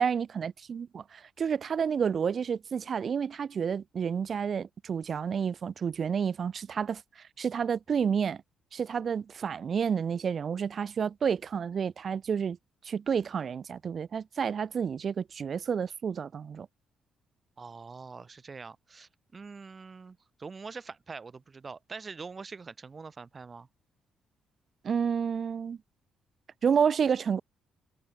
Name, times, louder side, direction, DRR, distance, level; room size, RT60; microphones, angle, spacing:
voice 1, 0.0-8.4 8.7-12.6 12.8-16.7 24.8-25.8 26.6-27.4, right 7 dB, 50° right, 0.5 m, -30 dB
voice 2, 17.6-23.7, right 4 dB, 35° right, 8.0 m, -44 dB
cardioid pair, 90°, 0 cm